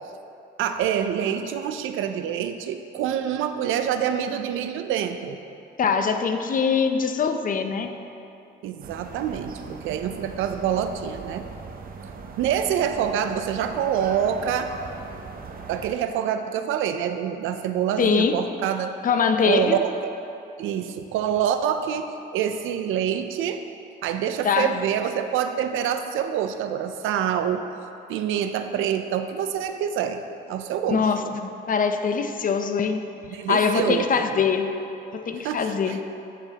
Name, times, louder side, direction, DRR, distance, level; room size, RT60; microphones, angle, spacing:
voice 1, 0.6-5.4 8.6-11.5 12.4-14.7 15.7-18.9 19.4-20.1 20.6-23.6 24.0-27.6 28.1-30.2 30.5-31.3 33.3-34.4 35.3-36.0, right 9 dB, 85° right, 8 dB, 0.5 m, -26 dB
voice 2, 5.8-7.9 18.0-18.3 19.0-19.8 24.4-24.7 30.9-31.2 31.7-33.0 33.5-34.7 35.1-36.0, left 6 dB, 45° left, 7 dB, 0.6 m, -22 dB
sound 1, 8.8-15.9, right 4 dB, 45° right, 0.7 m, -39 dB
14.5 x 5.0 x 2.9 m, 2.8 s
cardioid pair, 90°, 20 cm